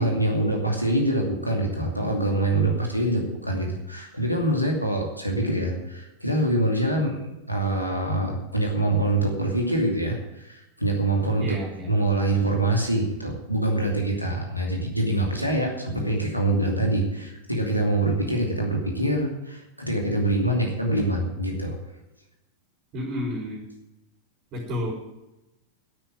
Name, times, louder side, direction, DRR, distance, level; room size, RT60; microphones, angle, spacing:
voice 1, 0.0-11.6 11.9-21.8, right 1 dB, 90° left, 0 dB, 2.6 m, -25 dB
voice 2, 11.4-11.9 22.9-23.6 24.5-24.9, left 1 dB, 35° right, 0 dB, 4.3 m, -30 dB
11.5 x 8.9 x 9.1 m, 0.95 s
figure-of-eight pair, 90°, 0 cm